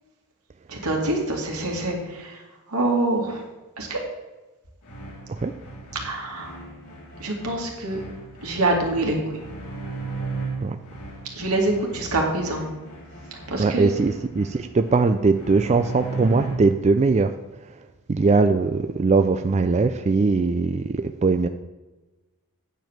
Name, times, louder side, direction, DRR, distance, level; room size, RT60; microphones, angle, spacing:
voice 1, 0.7-3.5 3.8-4.0 5.9-6.5 7.2-8.0 8.4-9.4 11.3-12.6 13.3-13.9, right 2 dB, 85° right, 0 dB, 2.3 m, -25 dB
sound 1, 4.8-16.9, right 3 dB, 85° left, 2.5 m, -36 dB
voice 2, 13.6-17.3 17.7-17.8 18.1-21.5, right 4 dB, 30° right, 8 dB, 0.3 m, -21 dB
9.2 x 5.2 x 7.3 m, 1.1 s
head